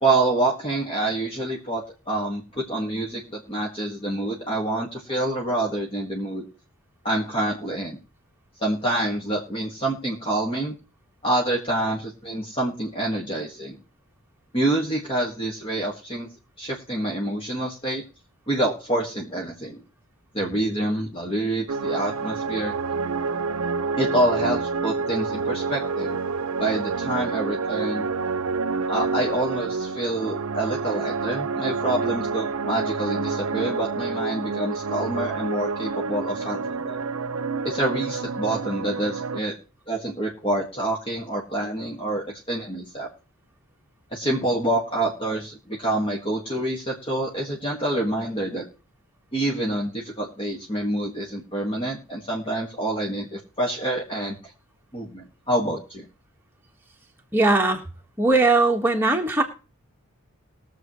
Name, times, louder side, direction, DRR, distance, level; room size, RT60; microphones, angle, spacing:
voice 1, 0.0-6.5 7.0-8.0 8.6-10.8 11.2-13.8 14.5-16.3 16.6-18.0 18.5-19.8 20.3-22.7 24.0-26.2 26.6-28.1 28.9-37.0 37.6-39.6 39.9-43.1 44.1-48.6 49.3-54.4 54.9-56.1, right 1 dB, 25° left, -1 dB, 1.7 m, -27 dB
sound 1, 21.7-39.4, right 4 dB, 70° right, 0.5 m, -28 dB
voice 2, 57.3-57.8 58.2-59.4, right 3 dB, 10° right, 1 dB, 1.5 m, -19 dB
21.5 x 7.2 x 3.1 m, 0.34 s
head